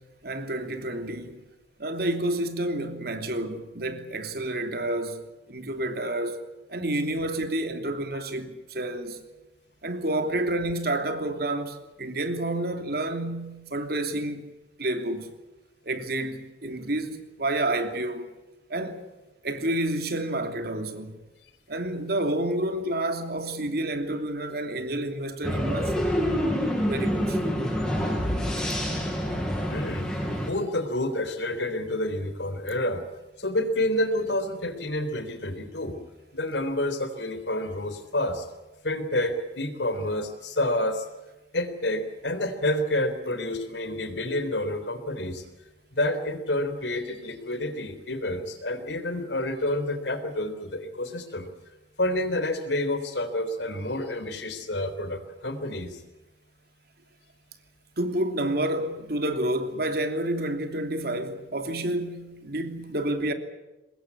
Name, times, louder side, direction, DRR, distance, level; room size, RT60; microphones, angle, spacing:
voice 1, 0.0-1.4 1.8-6.4 6.7-9.2 9.8-14.5 14.8-15.3 15.8-18.3 18.7-19.1 19.4-21.1 21.7-26.0 26.9-27.4 58.0-63.3, right 1 dB, 60° right, 3.0 m, -29 dB
sound 1, 25.4-30.5, equal, 5° left, 6.5 m, -27 dB
voice 2, 29.7-33.0 33.4-36.0 36.3-38.5 38.8-41.0 41.5-45.4 45.9-51.5 52.0-56.0, left 1 dB, 80° left, 3.6 m, -29 dB
24.0 x 20.5 x 8.5 m
head